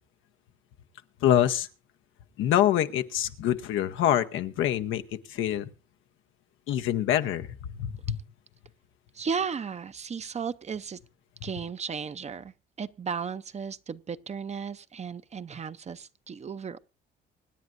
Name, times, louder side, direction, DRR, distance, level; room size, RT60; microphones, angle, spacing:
voice 1, 1.2-1.7 2.4-5.0 5.3-5.7 6.7-7.5 7.8-8.2, left 11 dB, 90° left, 0.8 m, -25 dB
voice 2, 9.1-11.0 11.4-16.8, right 6 dB, 35° right, 0.6 m, -35 dB
25.0 x 9.5 x 2.6 m
cardioid pair, 90°, 20 cm